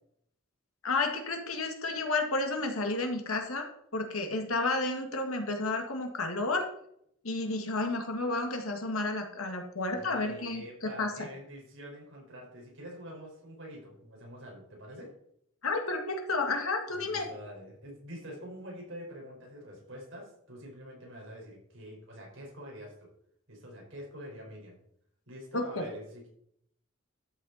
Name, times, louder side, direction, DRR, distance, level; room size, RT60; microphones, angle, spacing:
voice 1, 0.8-6.7 7.2-11.1 15.6-17.3 25.5-25.9, left 3 dB, 85° left, 4 dB, 2.0 m, -31 dB
voice 2, 9.9-15.1 16.9-23.1 23.5-24.8 25.3-26.3, equal, 65° right, -2 dB, 5.3 m, -46 dB
12.5 x 7.8 x 4.3 m, 0.71 s
head